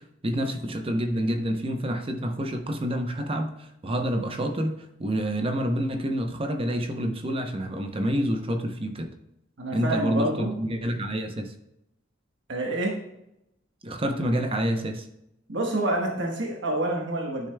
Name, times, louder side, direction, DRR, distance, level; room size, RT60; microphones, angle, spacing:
voice 1, 0.0-9.1 9.7-11.5 13.8-15.1, equal, 30° right, 0.7 m, -28 dB
voice 2, 9.6-10.5 12.5-13.0 15.5-17.5, right 1 dB, 65° right, 1.2 m, -27 dB
10.0 x 6.6 x 2.2 m
head